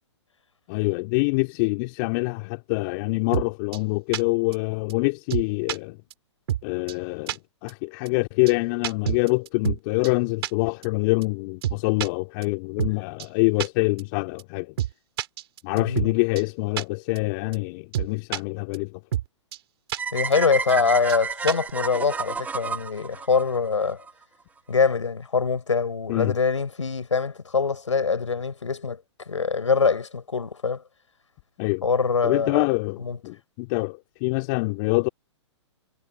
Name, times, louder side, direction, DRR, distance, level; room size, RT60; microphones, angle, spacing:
voice 1, 0.7-6.0 6.6-14.7 15.6-19.0 26.1-26.3 31.6-31.8 32.2-35.1, left 27 dB, 40° left, 2.4 m, -25 dB
sound 1, 3.3-3.5 3.7-3.8 4.1-4.2 4.5-4.6 4.9-5.0 5.3-5.8 6.1-6.2 6.5-6.6 6.9-7.0 7.3-7.4 7.7-7.8 8.1-8.2 8.5-8.6 8.8-9.8 10.0-10.1 10.4-10.5 10.8-10.9 11.2-11.3 11.6-12.1 12.4-12.5 12.8-12.9 13.2-13.3 13.6-13.7 14.0-14.1 14.4-14.5 14.8-14.9 15.2-16.1 16.4-16.5 16.8-16.9 17.2-17.3 17.5-17.6 17.9-18.4 18.7-18.8 19.1-19.3 19.5-19.6 19.9-20.0 20.3-20.4 20.7-20.8 21.1-21.2 21.5-21.7, right 12 dB, 55° right, 3.5 m, -27 dB
voice 2, 15.7-16.1 20.1-24.0 24.7-29.0 29.3-30.8 31.8-32.6 33.0-33.2, left 5 dB, 85° left, 6.5 m, -24 dB
sound 2, 20.0-24.1, right 5 dB, 10° right, 1.1 m, -31 dB
hypercardioid pair, 120°, 15 cm